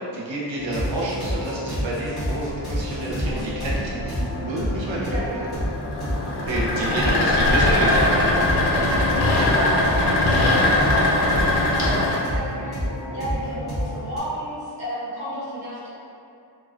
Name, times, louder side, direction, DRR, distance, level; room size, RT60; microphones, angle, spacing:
voice 1, 0.1-5.2 6.4-8.3, right 1 dB, 85° right, -6 dB, 0.6 m, -29 dB
sound 1, 0.6-14.2, equal, ahead, 1.2 m, -29 dB
sound 2, 2.5-12.2, left 1 dB, 65° left, 0.5 m, -22 dB
voice 2, 5.0-5.5 6.8-8.4 8.7-12.8 13.1-15.9, right 1 dB, 15° right, -13 dB, 0.7 m, -32 dB
2.4 x 2.2 x 2.3 m, 2.5 s
wide cardioid pair, 165°, 44 cm